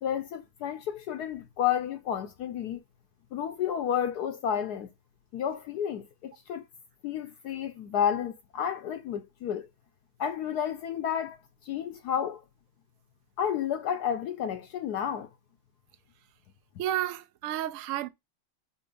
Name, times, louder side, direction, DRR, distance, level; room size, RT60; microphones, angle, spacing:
voice 1, 0.0-2.8 3.3-4.9 5.3-6.6 7.0-9.7 10.2-12.4 13.4-15.3, left 9 dB, 70° left, 1.0 m, -31 dB
voice 2, 16.8-18.1, right 12 dB, 80° right, 0.7 m, -31 dB
5.1 x 4.5 x 5.2 m
omnidirectional pair, 2.1 m